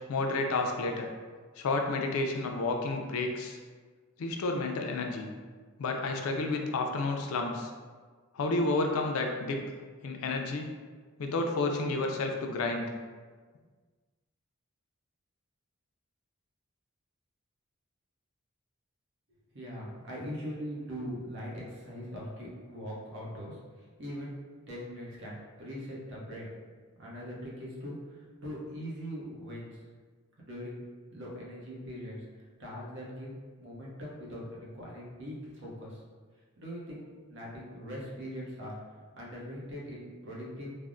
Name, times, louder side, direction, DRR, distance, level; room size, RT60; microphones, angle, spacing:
voice 1, 0.1-1.1 1.6-3.6 4.2-5.3 5.8-7.7 8.3-9.6 10.0-10.7 11.2-12.9, left 3 dB, 80° left, 3 dB, 0.4 m, -30 dB
voice 2, 19.5-24.4 24.7-26.5 27.0-29.8 30.4-30.8 31.1-32.2 32.6-36.0 36.6-38.7 39.1-40.8, equal, 60° right, -4 dB, 0.7 m, -41 dB
3.3 x 2.0 x 2.5 m, 1.5 s
head